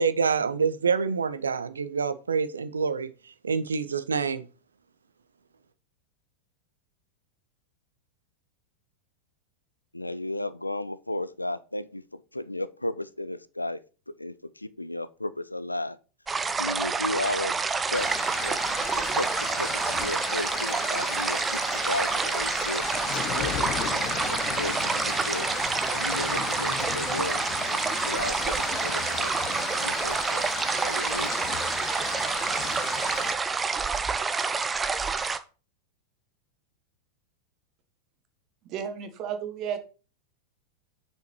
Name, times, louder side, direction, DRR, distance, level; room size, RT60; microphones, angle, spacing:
voice 1, 0.0-3.1 3.4-4.5, right 5 dB, 70° right, 0.5 m, -26 dB
voice 2, 9.9-13.8 14.1-16.0 16.6-17.6 17.9-18.6 18.9-19.3 19.6-22.8 23.3-24.0 24.3-25.5 25.9-27.4 27.8-29.3 29.8-30.4 30.8-31.3, left 1 dB, 85° left, 0.4 m, -34 dB
sound 1, 16.3-35.4, right 4 dB, 15° right, 0.6 m, -28 dB
sound 2, 17.9-33.3, left 10 dB, 40° left, 0.9 m, -35 dB
voice 3, 38.7-39.8, right 8 dB, 35° right, 1.5 m, -33 dB
6.5 x 5.5 x 4.5 m
figure-of-eight pair, 90°, 0 cm